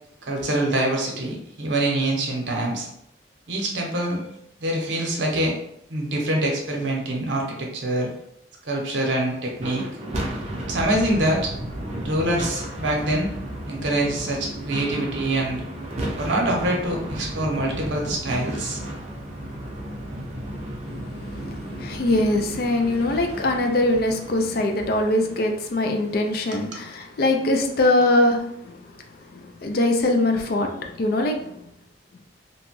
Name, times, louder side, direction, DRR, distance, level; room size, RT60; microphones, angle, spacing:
voice 1, 0.3-2.9 3.5-4.2 4.6-5.6 5.9-8.1 8.6-9.8 10.6-11.5 12.0-13.3 13.7-15.6 16.2-18.8, right 1 dB, 75° right, -1 dB, 0.7 m, -25 dB
sound 1, 9.6-25.9, right 1 dB, 35° right, 0.5 m, -33 dB
voice 2, 21.0-28.9 29.3-31.7, left 2 dB, 55° left, 4 dB, 0.4 m, -23 dB
2.9 x 2.2 x 3.0 m, 0.75 s
head